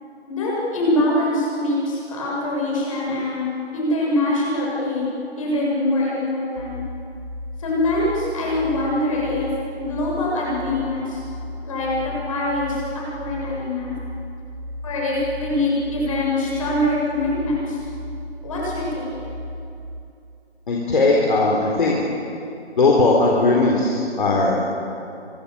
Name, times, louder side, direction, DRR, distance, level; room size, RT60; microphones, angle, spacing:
voice 1, 0.3-3.5 3.7-5.1 5.4-6.8 7.6-11.2 11.6-12.8 13.2-13.9 14.8-17.8 18.4-19.1, left 1 dB, 30° left, -4 dB, 7.3 m, -23 dB
sound 1, 6.6-19.9, equal, 40° right, 6.7 m, -35 dB
voice 2, 20.7-22.0 22.8-24.8, left 3 dB, 45° left, -3 dB, 3.9 m, -18 dB
25.5 x 22.5 x 7.0 m, 2.7 s
figure-of-eight pair, 165°, 34 cm